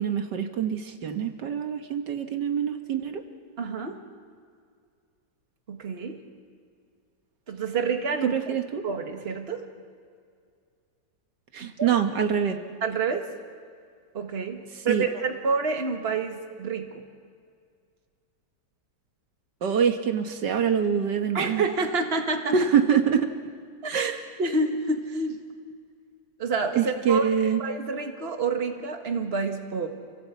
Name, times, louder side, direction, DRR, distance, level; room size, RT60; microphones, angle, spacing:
voice 1, 0.0-3.2 8.3-8.8 11.5-12.6 14.9-15.0 19.6-21.6 22.5-23.3 23.9-24.2 26.8-27.6, right 7 dB, 75° right, 6 dB, 1.9 m, -25 dB
voice 2, 3.6-4.0 5.7-6.2 7.5-8.6 8.8-9.6 11.6-11.9 12.8-13.3 14.1-16.9 21.3-22.5 23.8-24.1 24.4-25.4 26.4-27.3 27.6-29.9, right 4 dB, 35° right, 4 dB, 1.8 m, -28 dB
28.5 x 17.0 x 8.3 m, 2.2 s
omnidirectional pair, 1.9 m